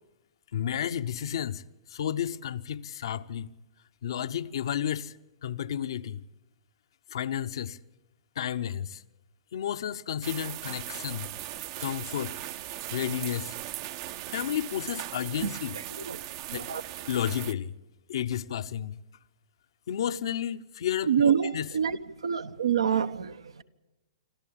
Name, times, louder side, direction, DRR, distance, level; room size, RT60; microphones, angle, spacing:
voice 1, 0.5-1.6 1.9-3.5 4.0-5.1 5.4-6.2 7.1-7.8 8.4-9.0 9.5-12.4 12.9-13.6 14.3-15.8 16.5-16.7 17.1-17.8 18.1-19.0 19.9-21.7, left 9 dB, 65° left, 0.9 m, -32 dB
sound 1, 10.2-17.5, right 14 dB, 45° right, 0.8 m, -38 dB
voice 2, 16.5-16.8 21.1-22.0 22.2-23.6, right 8 dB, 80° right, 1.1 m, -26 dB
27.0 x 13.5 x 8.7 m
hypercardioid pair, 120°, 3 cm